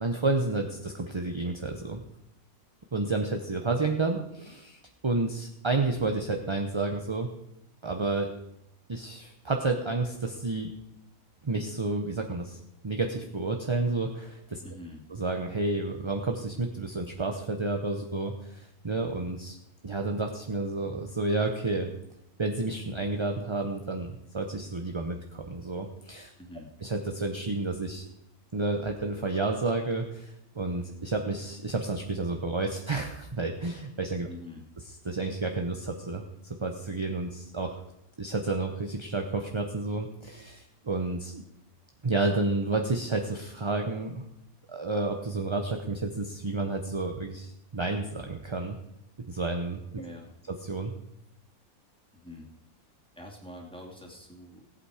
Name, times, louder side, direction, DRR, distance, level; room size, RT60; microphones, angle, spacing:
voice 1, 0.0-2.0 2.9-7.3 7.8-8.3 8.9-10.7 11.4-14.6 15.1-19.5 19.8-21.9 22.4-26.3 26.8-28.0 28.5-34.3 35.0-36.2 36.6-37.8 38.2-41.4 42.0-44.2 44.7-48.8 49.3-50.0 50.6-50.9, right 3 dB, 25° right, 4 dB, 0.7 m, -30 dB
voice 2, 14.6-15.1 26.3-26.7 34.3-34.7 49.9-50.3 52.1-52.5 53.2-54.9, left 1 dB, 5° left, -2 dB, 2.5 m, -45 dB
17.5 x 8.3 x 4.9 m, 0.81 s
omnidirectional pair, 1.5 m